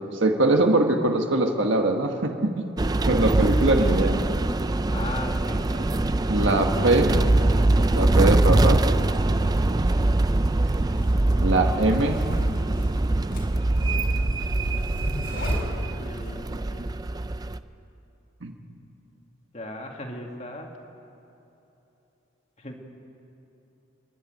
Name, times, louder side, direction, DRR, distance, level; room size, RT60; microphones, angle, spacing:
voice 1, 0.1-2.6 3.0-4.2 6.3-7.2 7.9-8.8 11.4-12.2 18.4-18.5, right 2 dB, 65° right, 3 dB, 1.4 m, -22 dB
sound 1, 2.8-17.6, right 2 dB, 20° right, 0.4 m, -23 dB
voice 2, 4.9-5.9 6.2-6.6 9.5-10.2 16.0-17.0 19.5-20.7 22.6-22.8, left 1 dB, 35° left, 2 dB, 2.3 m, -38 dB
sound 2, 10.0-16.3, left 1 dB, 55° left, 4.4 m, -35 dB
29.0 x 11.5 x 9.2 m, 3.0 s
head